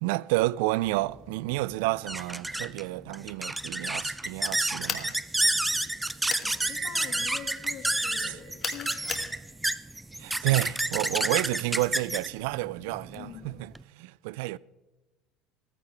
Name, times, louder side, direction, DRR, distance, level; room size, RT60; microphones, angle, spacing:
voice 1, 0.0-5.2 8.3-8.4 10.2-14.6, right 19 dB, 75° right, 0.3 m, -30 dB
sound 1, 0.9-13.8, right 1 dB, 5° right, 0.4 m, -30 dB
sound 2, 4.9-5.1 6.3-6.5 8.6-9.3, left 6 dB, 30° left, 1.6 m, -33 dB
voice 2, 6.4-9.3 13.1-13.6, left 9 dB, 60° left, 2.0 m, -45 dB
sound 3, 6.6-10.0, right 8 dB, 60° right, 3.1 m, -43 dB
16.0 x 14.5 x 3.4 m
supercardioid pair, 105°, 0 cm